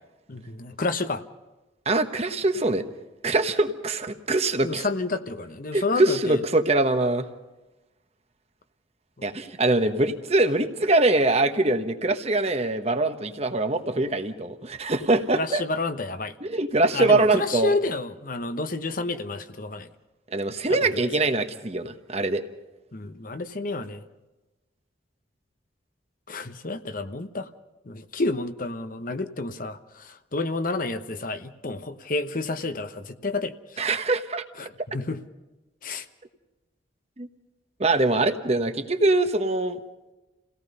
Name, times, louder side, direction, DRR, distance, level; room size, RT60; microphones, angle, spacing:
voice 1, 0.3-1.2 4.6-6.4 15.3-16.3 16.9-19.9 22.9-24.1 26.3-27.5 27.9-33.5 34.6-34.7 34.9-35.2 35.8-36.0, left 3 dB, 50° left, 9 dB, 1.0 m, -30 dB
voice 2, 1.8-2.9 3.2-4.9 5.7-7.3 9.2-15.6 16.4-17.7 20.3-22.4 33.8-34.4 37.2-37.3 37.8-39.8, right 2 dB, 35° right, 7 dB, 1.3 m, -23 dB
29.0 x 17.5 x 5.5 m, 1.1 s
head